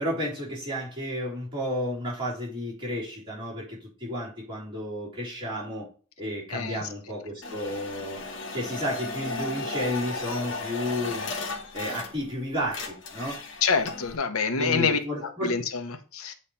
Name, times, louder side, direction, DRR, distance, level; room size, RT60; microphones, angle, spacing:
voice 1, 0.0-5.9 6.2-8.2 8.5-11.3 11.7-13.4 14.6-15.6, equal, 25° right, 3.6 m, -32 dB
voice 2, 6.5-6.9 13.6-15.0 15.4-16.3, left 5 dB, 80° left, 0.9 m, -26 dB
sound 1, 7.4-12.4 12.6-14.2, left 3 dB, 60° left, 1.2 m, -35 dB
8.5 x 3.2 x 5.5 m
head